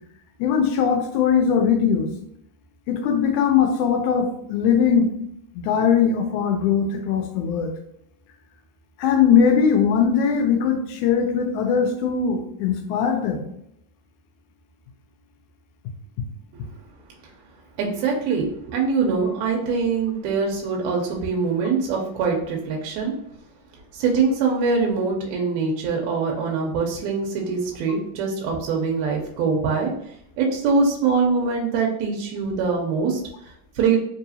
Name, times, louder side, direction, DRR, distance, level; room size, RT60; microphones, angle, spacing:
voice 1, 0.4-2.1 2.9-5.1 5.6-7.7 9.0-13.4, left 7 dB, 80° left, 4 dB, 1.9 m, -20 dB
voice 2, 17.8-23.1 23.9-34.0, right 5 dB, 80° right, 0 dB, 1.8 m, -23 dB
4.7 x 2.7 x 2.7 m, 0.74 s
omnidirectional pair, 3.6 m